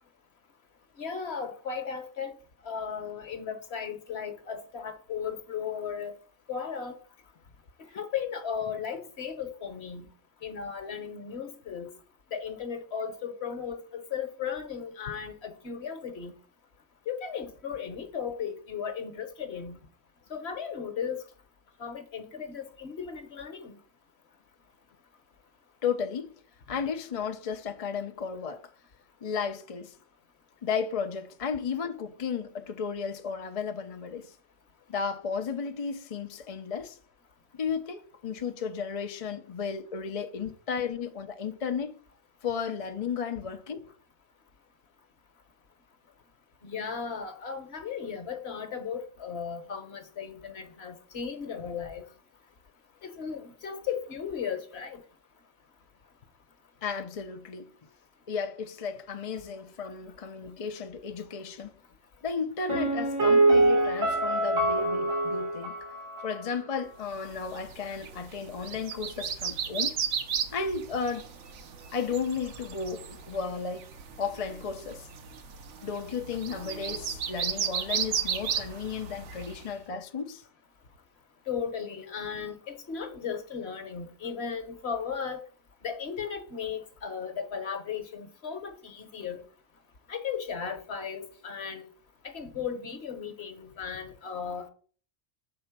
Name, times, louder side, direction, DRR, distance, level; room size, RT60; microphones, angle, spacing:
voice 1, 1.0-2.3 2.6-6.1 6.5-7.0 7.9-10.1 10.4-11.9 12.3-16.3 17.1-19.8 20.3-21.2 21.8-23.8 46.6-52.0 53.0-55.0 81.5-85.4 85.8-89.4 90.1-91.9 92.2-94.7, left 7 dB, 55° left, 1.3 m, -36 dB
voice 2, 25.8-26.3 26.7-28.6 29.2-29.9 30.6-34.3 34.9-37.0 37.5-42.0 42.4-43.8 56.8-57.7 58.3-61.7 62.2-65.7 66.2-69.9 70.5-71.3 71.9-73.9 74.2-75.1 75.8-80.4, left 6 dB, 40° left, 0.5 m, -34 dB
Piano, 62.7-66.4 66.7-66.8, right 2 dB, 90° right, 3.7 m, -24 dB
sound 1, 67.3-79.7, right 7 dB, 65° right, 1.1 m, -35 dB
7.6 x 4.3 x 5.9 m
omnidirectional pair, 1.3 m